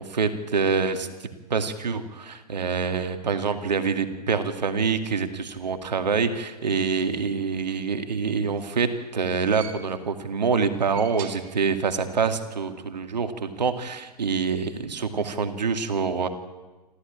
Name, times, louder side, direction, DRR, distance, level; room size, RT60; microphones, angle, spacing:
voice 1, 0.0-16.3, right 5 dB, 80° right, 8 dB, 2.3 m, -26 dB
sound 1, 8.3-10.2 10.7-12.1 12.4-12.5 13.6-13.7, right 9 dB, 45° right, 2.4 m, -45 dB
27.0 x 14.5 x 8.8 m, 1.2 s
hypercardioid pair, 105°, 21 cm